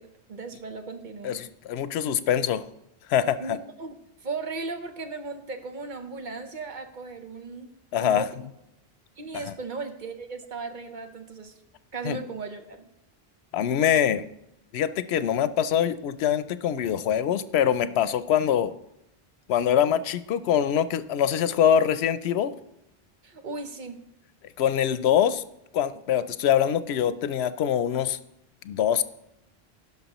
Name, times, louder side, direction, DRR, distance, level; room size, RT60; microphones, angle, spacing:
voice 1, 0.0-1.4 3.4-7.7 8.0-8.3 9.2-11.6 11.9-12.9 23.2-24.0, right 4 dB, 50° right, 6 dB, 0.9 m, -36 dB
voice 2, 1.2-2.6 3.1-3.6 7.9-8.3 12.0-12.2 13.5-14.2 14.7-18.7 19.5-22.5 24.6-25.4 25.7-28.2 28.6-29.0, left 9 dB, 90° left, 14 dB, 0.8 m, -24 dB
16.5 x 5.8 x 3.0 m, 0.84 s
omnidirectional pair, 1.0 m